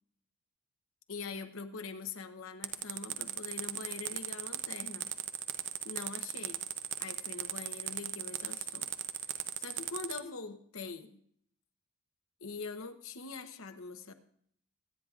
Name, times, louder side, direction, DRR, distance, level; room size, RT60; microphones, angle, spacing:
voice 1, 1.1-5.1 5.8-6.6 7.0-8.9 9.6-11.2 12.4-14.1, left 4 dB, 65° left, 8 dB, 0.9 m, -43 dB
sound 1, 2.6-10.2, right 11 dB, 55° right, 0.6 m, -37 dB
24.0 x 9.6 x 2.5 m, 0.65 s
head